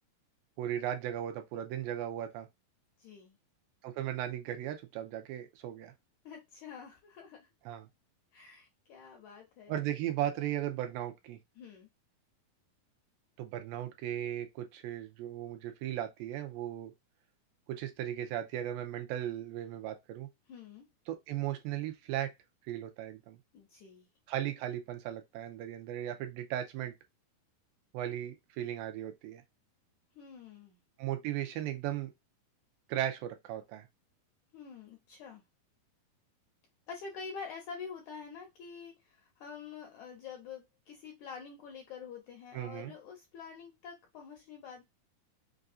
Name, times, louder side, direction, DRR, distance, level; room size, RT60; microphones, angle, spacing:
voice 1, 0.6-2.5 3.8-5.9 7.7-7.9 9.7-11.4 13.4-16.9 17.7-20.3 21.1-22.3 22.6-23.4 24.3-26.9 27.9-29.4 31.0-32.1 32.9-33.9 42.5-42.9, right 12 dB, 85° right, 2.4 m, -36 dB
voice 2, 3.0-3.4 6.2-7.5 8.3-9.7 11.6-11.9 20.5-20.9 23.5-24.1 30.1-30.8 34.5-35.4 36.9-44.8, left 6 dB, 80° left, 1.7 m, -47 dB
5.6 x 2.4 x 2.6 m
omnidirectional pair, 4.2 m